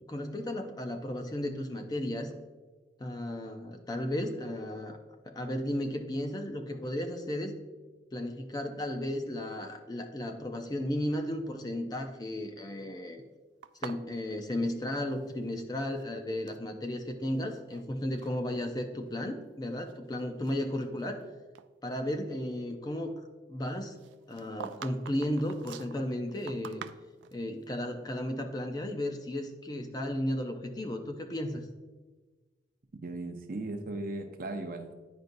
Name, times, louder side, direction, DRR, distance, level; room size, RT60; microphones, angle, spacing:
voice 1, 0.0-2.3 3.0-5.0 5.3-7.5 8.1-13.2 13.8-21.3 21.8-23.2 23.5-24.0 24.3-26.8 27.3-31.7, left 1 dB, 20° left, 6 dB, 0.5 m, -34 dB
sound 1, 13.6-15.6 15.9-16.7 17.3-17.8 18.2-18.4 19.1-19.2 19.7-21.2 21.5-21.7 24.0-27.4, right 8 dB, 90° right, 0.3 m, -46 dB
voice 2, 33.0-34.9, right 2 dB, 50° right, 5 dB, 0.6 m, -37 dB
9.4 x 5.1 x 2.6 m, 1.3 s
head